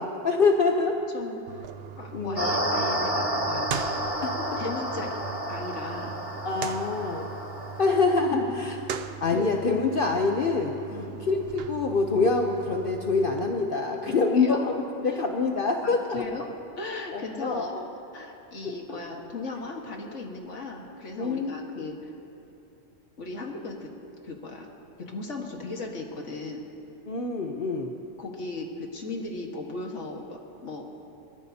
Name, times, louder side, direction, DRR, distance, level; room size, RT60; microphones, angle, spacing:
voice 1, 0.0-1.0 2.1-2.5 4.2-4.6 6.4-7.3 7.8-8.7 9.2-10.8 11.3-14.7 15.0-16.2 17.1-17.8 18.9-19.0 21.2-21.8 27.1-27.9, left 4 dB, 50° left, 2 dB, 0.9 m, -25 dB
voice 2, 1.1-3.7 4.6-5.2 5.5-6.1 8.3-8.8 9.3-9.5 10.9-11.2 14.1-14.6 15.0-15.2 16.1-16.5 16.8-17.7 18.1-22.1 23.2-23.9 24.2-24.7 25.0-26.6 28.2-30.9, left 3 dB, 70° left, 0 dB, 1.9 m, -37 dB
sound 1, 1.5-13.5, right 8 dB, 60° right, 0.8 m, -40 dB
sound 2, 2.4-7.9, equal, 30° right, 2.2 m, -30 dB
26.5 x 14.0 x 2.8 m, 2.9 s
omnidirectional pair, 1.3 m